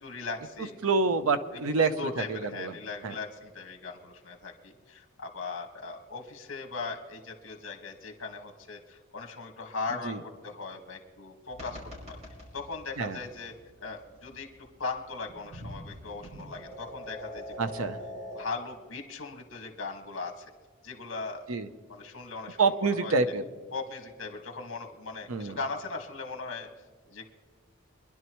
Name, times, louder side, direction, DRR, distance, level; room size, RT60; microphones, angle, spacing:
voice 1, 0.0-0.8 1.8-12.2 12.5-13.5 13.8-17.5 18.3-20.5 20.8-21.5 21.9-22.7 23.0-23.1 23.7-26.7 27.1-27.3, left 4 dB, 65° left, 3 dB, 1.9 m, -39 dB
voice 2, 0.8-2.8 3.0-3.1 10.0-10.2 13.0-13.2 17.6-18.0 21.5-21.7 22.6-23.4 25.3-25.6, right 4 dB, 90° right, 9 dB, 0.8 m, -27 dB
sound 1, 11.5-18.4, equal, 30° right, 5.3 m, -44 dB
24.5 x 11.0 x 3.1 m, 1.4 s
head